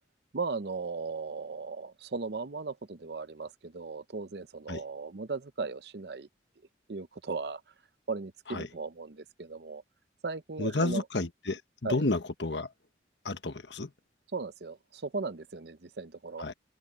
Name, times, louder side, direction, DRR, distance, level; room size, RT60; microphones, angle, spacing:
voice 1, 0.3-6.3 6.9-7.6 8.1-9.8 10.2-11.0 11.8-12.0 14.3-16.5, right 4 dB, 60° right, 0.7 m, -37 dB
voice 2, 10.6-11.6 11.9-12.7 13.2-13.9 16.4-16.5, left 2 dB, 70° left, 1.4 m, -31 dB
open air
head